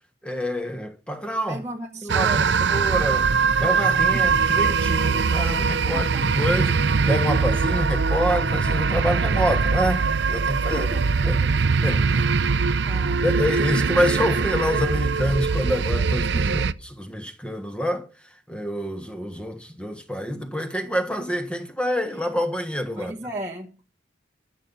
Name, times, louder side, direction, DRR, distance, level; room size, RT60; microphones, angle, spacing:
voice 1, 0.2-1.6 2.0-6.8 7.1-10.9 11.2-12.3 12.9-23.1, equal, 5° left, 1.3 m, -27 dB
voice 2, 1.5-2.6 4.1-4.3 5.9-6.4 10.7-11.1 12.8-13.3 16.3-16.8 23.0-23.8, right 1 dB, 15° right, 1.1 m, -35 dB
sound 1, 2.1-16.7, right 5 dB, 70° right, 0.6 m, -22 dB
13.5 x 7.2 x 5.4 m
head